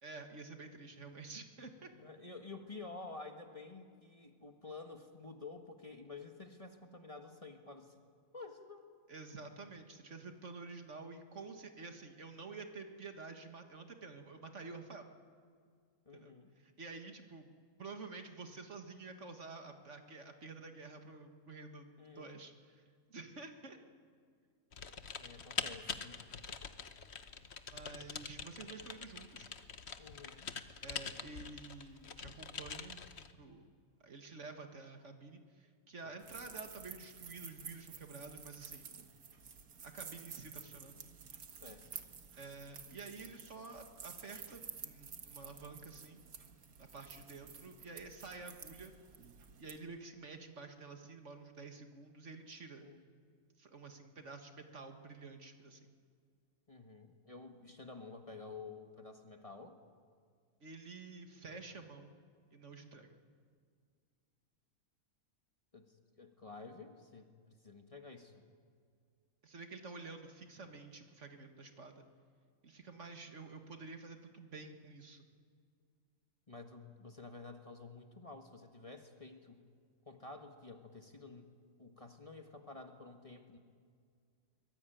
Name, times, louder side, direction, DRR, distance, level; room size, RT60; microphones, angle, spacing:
voice 1, 0.0-1.9 9.1-15.0 16.1-17.5 17.8-22.8 23.1-23.8 27.7-29.5 30.8-33.0 33.4-33.7 34.0-38.9 39.8-41.0 42.4-46.2 46.8-49.0 49.6-52.8 53.6-55.9 60.6-62.1 62.5-63.1 69.4-72.1 72.6-75.3, right 3 dB, 55° right, 5 dB, 2.0 m, -50 dB
voice 2, 1.9-7.9 8.3-8.9 16.0-16.5 22.0-22.4 25.2-26.2 30.0-30.5 36.0-36.1 39.0-39.1 41.6-41.9 52.8-53.0 56.7-59.8 65.7-68.3 76.5-79.6 80.0-81.5 81.8-83.6, left 3 dB, 25° left, 4 dB, 1.6 m, -51 dB
Typing, 24.7-33.3, left 6 dB, 50° left, 1.3 m, -44 dB
sound 1, 36.2-49.8, right 6 dB, 90° right, 1.9 m, -51 dB
24.0 x 21.0 x 9.2 m, 2.2 s
omnidirectional pair, 1.5 m